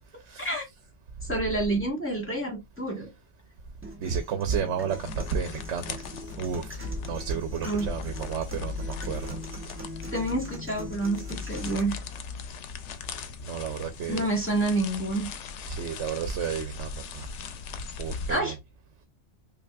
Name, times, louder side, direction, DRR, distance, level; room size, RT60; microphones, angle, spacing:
voice 1, 1.2-3.1 7.6-7.9 10.1-12.0 14.1-15.3 18.3-18.5, right 2 dB, 10° left, 1.5 m, -28 dB
sound 1, 3.8-11.8, equal, 10° right, 0.8 m, -42 dB
voice 2, 4.0-6.0 6.4-9.4 13.5-14.3 15.7-17.3 18.0-18.6, right 7 dB, 80° right, 0.9 m, -32 dB
sound 2, 4.9-18.4, left 5 dB, 80° left, 0.9 m, -38 dB
5.2 x 2.3 x 2.3 m
omnidirectional pair, 1.2 m